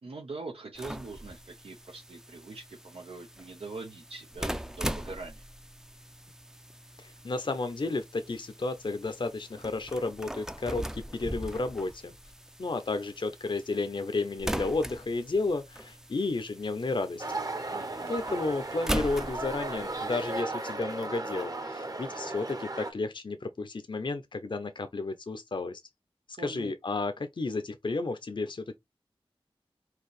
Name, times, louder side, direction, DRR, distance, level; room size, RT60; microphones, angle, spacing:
voice 1, 0.0-5.5 17.7-18.2 26.4-26.7, right 3 dB, 90° right, 0.9 m, -43 dB
sound 1, 0.7-20.4, equal, 5° right, 0.5 m, -40 dB
voice 2, 7.0-12.1 12.6-17.3 18.1-25.8 26.4-28.8, left 3 dB, 55° left, 0.7 m, -32 dB
sound 2, 17.2-22.9, right 2 dB, 40° right, 1.0 m, -35 dB
4.7 x 2.8 x 3.1 m
wide cardioid pair, 65°, 10 cm